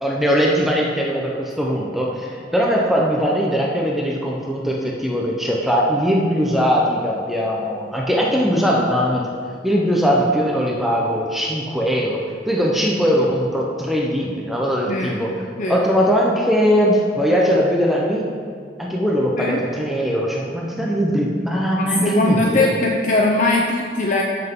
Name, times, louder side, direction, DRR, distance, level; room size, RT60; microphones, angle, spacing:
voice 1, 0.0-9.3 9.6-15.3 15.7-18.3 18.8-22.7, equal, ahead, -3 dB, 0.7 m, -20 dB
voice 2, 14.9-15.2 15.6-15.8 19.4-19.6 21.8-24.2, left 2 dB, 40° left, 0 dB, 0.6 m, -20 dB
13.5 x 5.8 x 3.8 m, 2.2 s
head